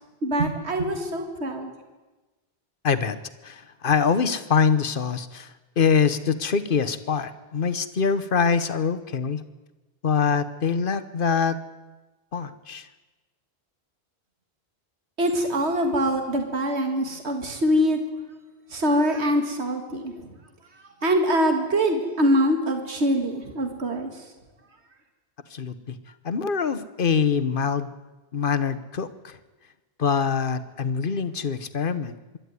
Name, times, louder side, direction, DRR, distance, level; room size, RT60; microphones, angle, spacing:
voice 1, 0.2-1.7 15.2-18.1 18.7-20.3 21.0-24.1, equal, 85° right, 5 dB, 2.2 m, -24 dB
voice 2, 2.8-3.2 3.4-9.4 10.0-11.6 12.3-12.9 25.5-26.0 26.2-27.9 28.3-29.4 30.0-32.4, left 6 dB, 55° left, 13 dB, 1.2 m, -24 dB
25.0 x 12.0 x 9.6 m, 1.2 s
omnidirectional pair, 1.1 m